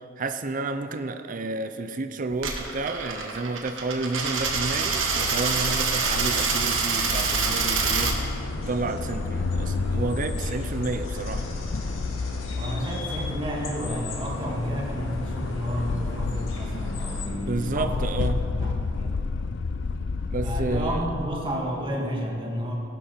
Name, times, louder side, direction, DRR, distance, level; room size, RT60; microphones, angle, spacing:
voice 1, 0.2-8.2 8.7-11.5 17.5-18.5 20.3-21.0, right 3 dB, 40° right, 9 dB, 0.5 m, -30 dB
Coin (dropping), 2.3-8.1, right 5 dB, 75° right, 1.7 m, -26 dB
sound 1, 4.1-17.3, left 1 dB, 80° left, 2.5 m, -37 dB
sound 2, 4.4-21.3, left 4 dB, 60° left, 0.4 m, -31 dB
voice 2, 12.6-18.0 18.3-19.1 20.4-22.7, equal, 25° right, -2 dB, 2.3 m, -31 dB
16.5 x 12.0 x 4.4 m, 2.5 s
head